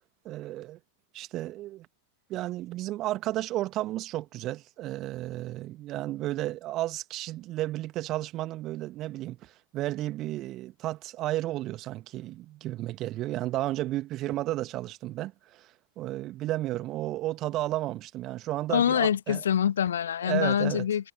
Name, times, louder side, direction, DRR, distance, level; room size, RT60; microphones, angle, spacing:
voice 1, 0.2-0.8 1.1-1.9 2.3-15.7 16.0-19.4 20.2-20.9, right 15 dB, 35° right, 1.9 m, -33 dB
voice 2, 18.7-21.1, left 9 dB, 65° left, 0.5 m, -25 dB
figure-of-eight pair, 90°, 0 cm